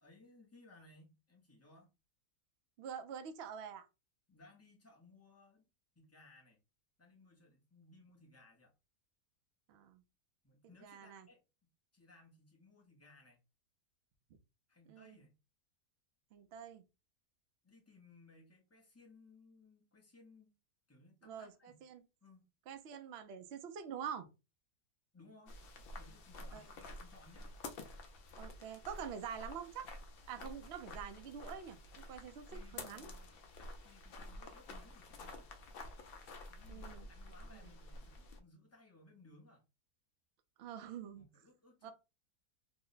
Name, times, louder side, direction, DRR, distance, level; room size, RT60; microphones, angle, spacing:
voice 1, 0.0-1.9 4.3-5.6 6.0-6.6 7.0-8.7 10.4-11.4 11.9-13.4 14.7-15.3 17.6-20.5 20.9-21.8 22.2-22.5 25.1-27.5 32.5-33.4 33.8-35.5 36.5-39.6 41.2-41.9, left 3 dB, 20° left, 0.4 m, -62 dB
voice 2, 2.8-3.9 9.7-10.0 10.8-11.3 14.9-15.2 16.3-16.8 21.2-21.5 21.8-22.0 22.7-24.3 26.5-26.6 28.4-29.9 30.3-33.1 36.7-37.1 37.5-37.6 40.6-41.3 41.8-41.9, right 8 dB, 65° right, 0.6 m, -46 dB
sound 1, 25.5-38.4, left 2 dB, 80° left, 0.5 m, -50 dB
2.9 x 2.0 x 3.9 m
omnidirectional pair, 1.6 m